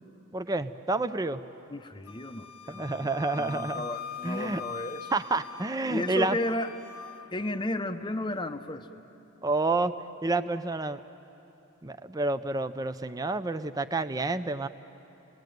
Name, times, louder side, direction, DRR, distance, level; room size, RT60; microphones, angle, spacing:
voice 1, 0.3-1.4 2.7-3.8 4.2-4.6 5.1-6.4 9.4-9.9 10.2-11.0 11.8-14.7, right 2 dB, 15° right, 10 dB, 0.5 m, -29 dB
voice 2, 1.7-3.1 3.3-5.1 5.9-6.7 7.3-8.9, left 1 dB, 20° left, 8 dB, 0.7 m, -33 dB
Wind instrument woodwind instrument, 2.1-7.3, left 8 dB, 85° left, 1.3 m, -42 dB
29.0 x 20.0 x 9.3 m, 3.0 s
head